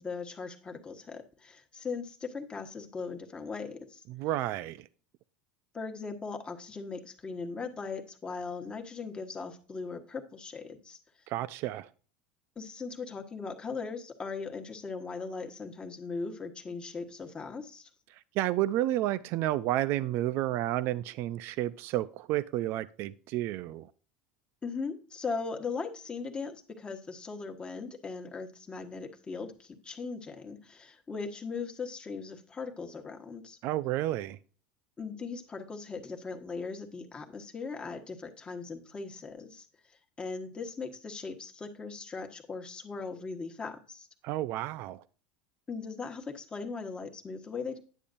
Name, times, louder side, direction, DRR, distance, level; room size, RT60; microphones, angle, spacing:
voice 1, 0.0-4.0 5.7-11.0 12.6-17.9 24.6-33.6 35.0-39.7 40.2-44.1 45.7-47.8, left 4 dB, 20° left, 1.3 m, -39 dB
voice 2, 4.1-4.8 11.3-11.9 18.4-23.9 33.6-34.4 44.2-45.0, right 14 dB, 55° right, 0.4 m, -31 dB
10.0 x 7.0 x 2.6 m
supercardioid pair, 110°, 5 cm